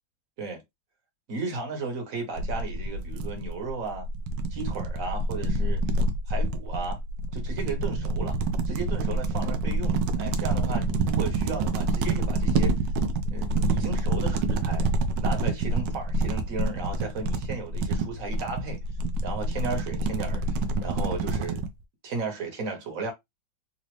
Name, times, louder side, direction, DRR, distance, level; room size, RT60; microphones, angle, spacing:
voice 1, 1.3-4.1 4.5-5.9 6.3-7.0 7.3-8.4 8.7-12.7 13.3-14.9 15.2-18.8 19.2-21.6 22.0-23.1, right 4 dB, 50° right, 1.5 m, -35 dB
sound 1, 2.4-21.7, right 2 dB, 75° right, 1.2 m, -27 dB
3.9 x 2.6 x 3.1 m
omnidirectional pair, 2.1 m